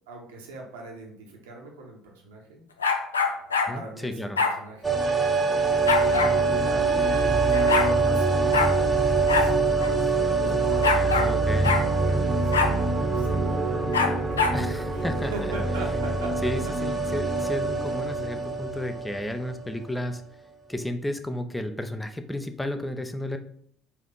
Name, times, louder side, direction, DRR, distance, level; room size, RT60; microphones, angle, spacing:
voice 1, 0.1-2.6 3.7-5.1 5.8-9.7 10.3-14.4 14.9-16.4 16.6-16.7, right 2 dB, 70° right, 0 dB, 0.9 m, -40 dB
sound 1, 2.8-3.7 4.4-4.6 5.9-6.3 7.2-7.3 7.5-7.9 8.5-8.7 9.3-9.5 9.8-9.9 10.8-11.3 11.6-11.8 12.5-12.7 13.9-14.6, left 4 dB, 80° left, 0.4 m, -24 dB
voice 2, 3.7-4.4 10.9-11.8 14.5-15.6 16.4-20.2 20.7-23.4, left 1 dB, 10° left, 8 dB, 0.4 m, -32 dB
sound 2, 4.8-19.7 20.0-20.1, right 3 dB, 15° right, 0.9 m, -24 dB
Trumpet, 5.0-9.3, right 6 dB, 50° right, 0.3 m, -37 dB
4.3 x 2.6 x 3.8 m, 0.64 s
figure-of-eight pair, 55°, 0 cm